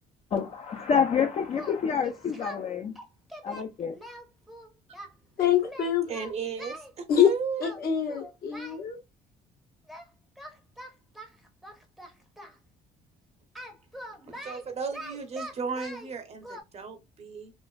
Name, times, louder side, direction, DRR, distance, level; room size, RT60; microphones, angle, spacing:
voice 1, 0.3-2.9 3.4-3.9, left 6 dB, 35° left, 0.4 m, -27 dB
Singing, 1.5-2.6 3.0-5.1 5.6-6.9 7.6-7.8 8.1-8.8 9.9-10.1 10.4-12.6 13.5-16.1 16.4-16.6, right 1 dB, ahead, 0.6 m, -43 dB
voice 2, 5.4-6.1 7.1-7.3 7.6-9.0, left 9 dB, 65° left, 1.0 m, -24 dB
voice 3, 6.1-7.7 14.3-17.5, right 5 dB, 40° right, 0.7 m, -35 dB
3.1 x 2.4 x 2.2 m
cardioid pair, 110°, 17 cm